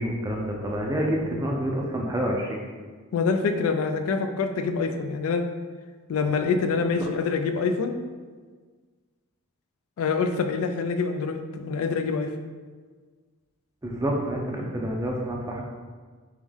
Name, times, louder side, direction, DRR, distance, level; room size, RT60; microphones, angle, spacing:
voice 1, 0.0-2.6 7.0-7.1 13.8-15.6, equal, 15° right, -1 dB, 0.4 m, -28 dB
voice 2, 3.1-5.5 6.1-8.0 10.0-12.3, left 4 dB, 75° left, 7 dB, 0.3 m, -25 dB
3.5 x 3.0 x 3.4 m, 1.5 s
head